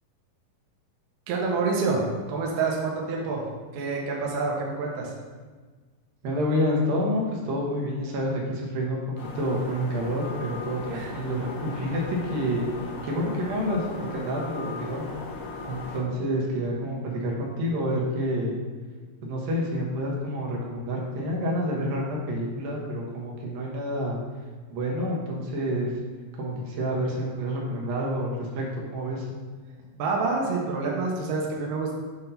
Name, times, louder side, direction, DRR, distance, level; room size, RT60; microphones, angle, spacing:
voice 1, 1.3-3.5 3.7-5.1 10.9-11.1 29.9-31.9, right 4 dB, 70° right, -2 dB, 2.1 m, -27 dB
voice 2, 6.2-9.0 9.4-12.7 13.0-15.1 15.7-18.6 19.2-24.2 24.7-26.0 26.3-29.3, equal, 85° right, -3 dB, 3.0 m, -28 dB
sound 1, 9.2-16.0, left 2 dB, 75° left, 2.7 m, -38 dB
8.0 x 2.7 x 5.6 m, 1.4 s
omnidirectional pair, 4.0 m